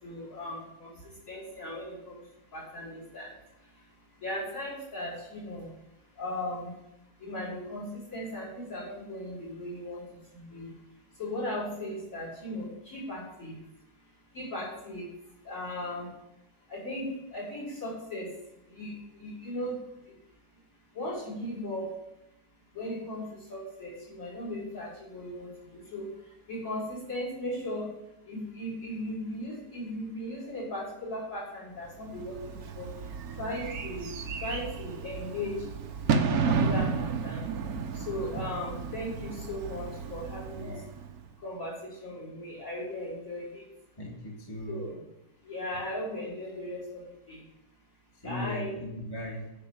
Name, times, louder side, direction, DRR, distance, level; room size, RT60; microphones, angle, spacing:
voice 1, 0.0-2.2 2.5-3.3 4.2-5.7 6.2-6.7 7.2-10.0 10.3-10.7 11.2-13.5 14.3-15.1 15.4-16.1 16.7-18.3 18.7-19.8 20.1-20.2 20.9-21.9 22.7-26.1 26.5-27.9 28.3-32.9 33.4-34.1 34.4-35.7 36.1-37.5 37.9-40.8 41.4-43.7 44.7-45.0 45.4-47.4 48.2-48.7, left 1 dB, 50° left, -5 dB, 5.6 m, -37 dB
Bird / Fireworks, 32.1-41.3, right 5 dB, 60° right, 1.2 m, -32 dB
voice 2, 44.0-44.9 48.2-49.5, left 1 dB, 15° left, -3 dB, 1.8 m, -38 dB
10.5 x 5.8 x 7.0 m, 0.86 s
omnidirectional pair, 1.8 m